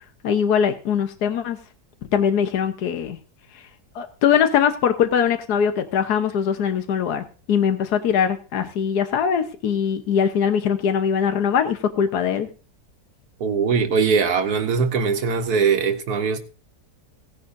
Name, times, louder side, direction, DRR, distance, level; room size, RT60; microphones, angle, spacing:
voice 1, 0.2-1.6 2.1-3.2 3.9-12.5, left 7 dB, 75° left, 1.5 m, -21 dB
voice 2, 13.4-16.4, right 5 dB, 75° right, 1.4 m, -21 dB
17.5 x 10.5 x 2.6 m
omnidirectional pair, 1.7 m